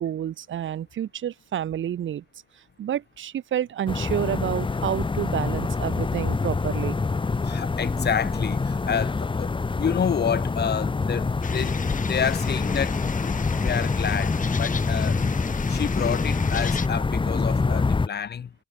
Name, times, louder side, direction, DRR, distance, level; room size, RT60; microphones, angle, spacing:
voice 1, 0.0-2.2 2.8-7.0, right 10 dB, 85° right, 3.6 m, -29 dB
sound 1, 3.9-18.1, left 4 dB, 25° left, 1.7 m, -26 dB
voice 2, 7.4-13.3 13.6-15.2 15.7-18.5, left 7 dB, 60° left, 6.9 m, -29 dB
sound 2, 11.4-16.9, left 6 dB, 45° left, 3.0 m, -33 dB
wide cardioid pair, 125°, 19 cm